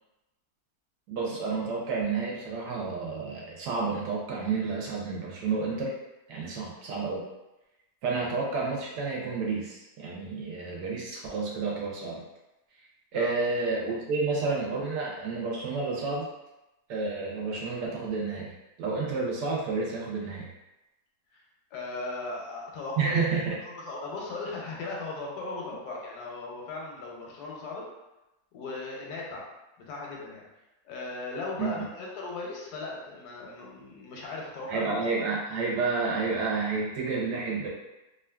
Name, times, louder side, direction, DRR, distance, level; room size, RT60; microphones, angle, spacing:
voice 1, 1.1-5.9 6.3-7.2 8.0-12.2 13.1-16.3 16.9-18.5 18.8-20.5 23.0-23.5 31.6-31.9 34.7-37.7, right 4 dB, 90° right, -3 dB, 1.3 m, -30 dB
voice 2, 13.1-13.7 21.3-21.4 21.7-27.9 28.5-29.5 29.9-30.4 30.8-35.2, left 3 dB, 85° left, -2 dB, 1.2 m, -37 dB
3.0 x 2.4 x 2.2 m, 0.99 s
omnidirectional pair, 1.7 m